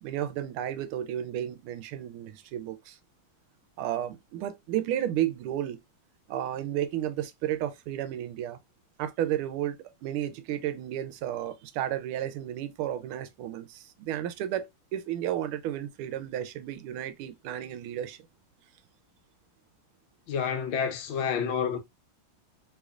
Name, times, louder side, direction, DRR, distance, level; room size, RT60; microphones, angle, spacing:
voice 1, 0.0-3.0 3.8-5.8 6.3-8.6 9.0-18.2, right 11 dB, 90° right, 1.5 m, -32 dB
voice 2, 20.3-21.8, left 7 dB, 75° left, 1.4 m, -29 dB
3.3 x 3.1 x 2.4 m
omnidirectional pair, 2.3 m